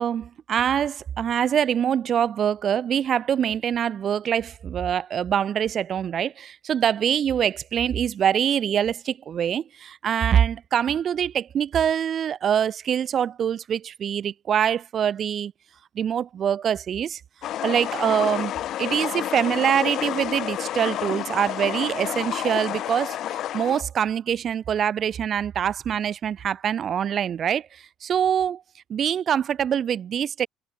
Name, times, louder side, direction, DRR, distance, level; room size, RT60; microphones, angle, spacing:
voice 1, 0.0-15.5 15.9-17.2 17.6-18.5 18.8-28.6 28.9-30.5, right 9 dB, 45° right, 2.2 m, -24 dB
sound 1, 17.4-23.8, left 12 dB, 60° left, 1.9 m, -30 dB
cardioid pair, 115°, 0 cm